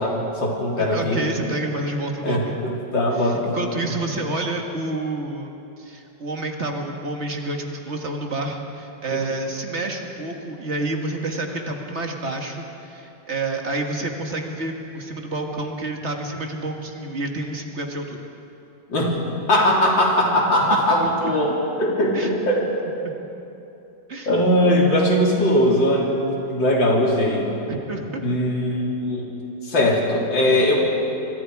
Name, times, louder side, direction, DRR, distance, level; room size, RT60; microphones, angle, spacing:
voice 1, 0.0-1.2 2.2-3.5 9.1-9.2 18.9-19.1 19.5-22.7 24.3-27.5 28.2-29.3 29.6-30.8, left 1 dB, 80° left, -2 dB, 4.0 m, -20 dB
voice 2, 0.8-2.6 3.2-18.2 20.5-20.8 22.1-22.3 23.0-23.1 24.1-24.3 27.7-28.2, right 2 dB, 35° right, 2 dB, 2.0 m, -29 dB
26.5 x 23.5 x 4.8 m, 2.9 s
omnidirectional pair, 2.0 m